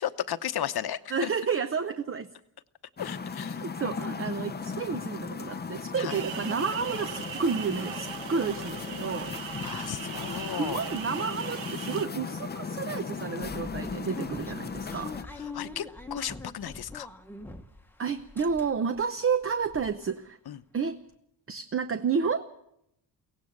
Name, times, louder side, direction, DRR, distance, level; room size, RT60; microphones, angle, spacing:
voice 1, 0.0-1.3 3.0-3.6 6.0-6.2 9.6-10.8 15.4-17.1 20.5-20.6, left 10 dB, 60° left, 11 dB, 1.0 m, -34 dB
voice 2, 1.1-2.3 3.6-9.3 10.6-15.2 18.0-20.4 20.7-21.0 21.5-22.4, right 5 dB, 30° right, 10 dB, 0.8 m, -30 dB
sound 1, 3.0-15.2, left 5 dB, 25° left, 0.7 m, -37 dB
sound 2, 6.1-12.1, right 8 dB, 85° right, 1.4 m, -39 dB
sound 3, 13.4-17.9 18.2-19.0 19.4-19.5 19.7-19.9, left 3 dB, 5° left, 1.2 m, -43 dB
23.0 x 17.5 x 6.5 m, 0.77 s
wide cardioid pair, 140°, 43 cm